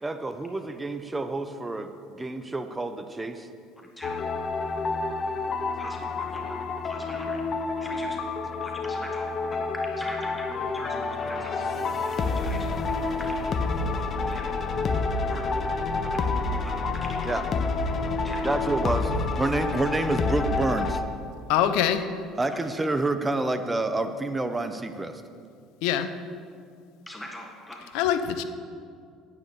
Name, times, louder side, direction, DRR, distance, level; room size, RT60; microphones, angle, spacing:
voice 1, 0.0-3.5 5.5-5.6 13.8-13.9 14.2-14.3 15.2-15.3 15.9-16.0 17.3-17.4 18.4-21.0 22.4-25.2, right 2 dB, 15° right, 8 dB, 0.9 m, -29 dB
sound 1, 4.0-21.0, left 3 dB, 40° left, 1.0 m, -28 dB
voice 2, 5.8-6.6 6.8-7.5 7.8-8.2 8.6-11.5 12.1-13.6 13.9-14.4 15.3-15.6 16.6-17.3 18.2-18.5 22.5-22.6 27.1-27.9, left 1 dB, 10° left, 1 dB, 1.5 m, -42 dB
voice 3, 21.5-22.1 25.8-26.1 27.9-28.4, left 9 dB, 70° left, 10 dB, 0.8 m, -23 dB
9.6 x 9.5 x 7.0 m, 2.3 s
hypercardioid pair, 60°, 0 cm